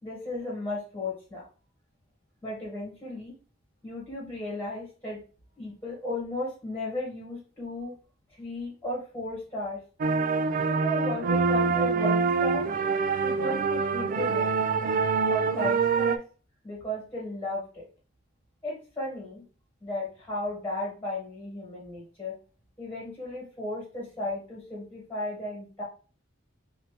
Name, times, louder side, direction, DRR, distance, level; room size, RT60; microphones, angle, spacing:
voice 1, 0.0-1.5 2.4-3.3 3.8-5.2 5.6-8.0 8.4-9.8 10.6-12.6 13.2-14.5 15.3-16.2 16.6-17.9 18.6-19.4 19.8-22.3 22.8-25.8, left 1 dB, 10° left, -5 dB, 1.8 m, -34 dB
sound 1, 10.0-16.2, right 5 dB, 45° right, 0.3 m, -25 dB
4.2 x 2.7 x 3.3 m, 0.37 s
head